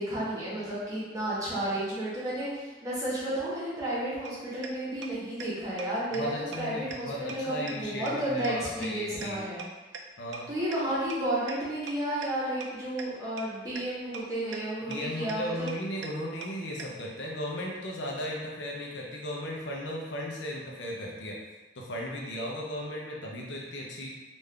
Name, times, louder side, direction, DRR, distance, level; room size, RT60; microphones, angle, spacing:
voice 1, 0.0-9.6 10.5-15.7, right 1 dB, 20° right, -10 dB, 1.3 m, -32 dB
sound 1, 4.2-4.3 4.6-4.7 5.0-5.1 5.4-5.5 5.8-5.9 6.1-6.2 6.5-6.6 6.9-7.0 7.3-7.4 7.7-7.8 8.1-8.2 8.4-8.5 8.8-8.9 9.2-9.3 9.6-9.7 9.9-10.0 10.3-10.4 10.7-10.8 11.1-11.2 11.5-11.6 11.9-12.0 12.2-12.3 12.6-12.7 13.0-13.1 13.4-13.5 13.8-13.9 14.1-14.2 14.5-14.6 14.9-15.0 15.3-15.4 15.7-15.8 16.0-16.1 16.4-16.5 16.8-16.9, right 7 dB, 75° right, 0.4 m, -38 dB
voice 2, 6.1-9.4 10.2-10.5 14.9-21.4 21.8-24.1, equal, 75° left, -2 dB, 0.7 m, -36 dB
3.6 x 2.6 x 3.3 m, 1.2 s
head